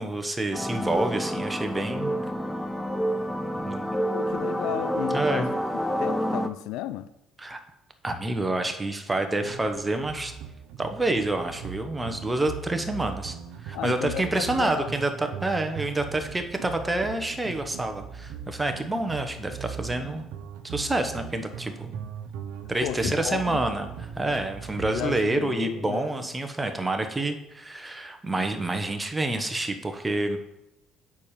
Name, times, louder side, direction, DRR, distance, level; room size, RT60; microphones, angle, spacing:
voice 1, 0.0-2.1 3.6-3.8 5.1-5.5 7.4-7.6 8.0-10.3 10.8-13.4 13.6-20.2 20.6-21.9 22.7-23.9 24.2-30.4, right 2 dB, 15° right, 1.1 m, -28 dB
sound 1, 0.5-6.5, equal, 5° left, 0.6 m, -28 dB
voice 2, 4.1-7.1 13.7-15.0 22.8-23.6 24.7-26.3, left 13 dB, 75° left, 0.4 m, -34 dB
sound 2, 9.4-25.1, right 7 dB, 75° right, 0.7 m, -40 dB
7.1 x 4.4 x 5.0 m
supercardioid pair, 70°, 0 cm